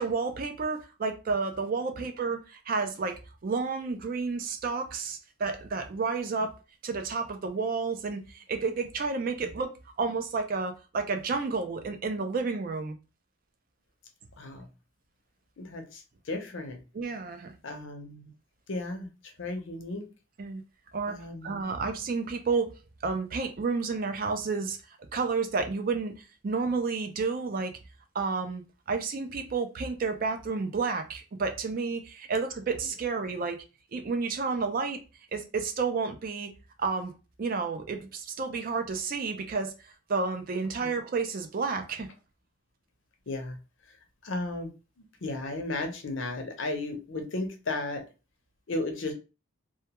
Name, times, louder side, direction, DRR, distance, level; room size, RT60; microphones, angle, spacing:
voice 1, 0.0-6.5 6.8-9.7 10.0-13.0 16.9-17.5 20.4-20.6 20.9-22.7 23.0-24.8 25.1-27.7 28.1-33.6 33.9-35.0 35.3-36.5 36.8-37.1 37.4-42.1, right 4 dB, 45° right, 0.4 m, -31 dB
voice 2, 14.4-14.7 15.6-16.8 17.6-18.3 18.7-20.1 21.1-21.7 40.8-40.9 43.3-43.6 43.9-44.0 44.2-44.7 45.0-48.0 48.7-49.1, left 2 dB, 65° left, 0.6 m, -35 dB
2.2 x 2.2 x 2.9 m
head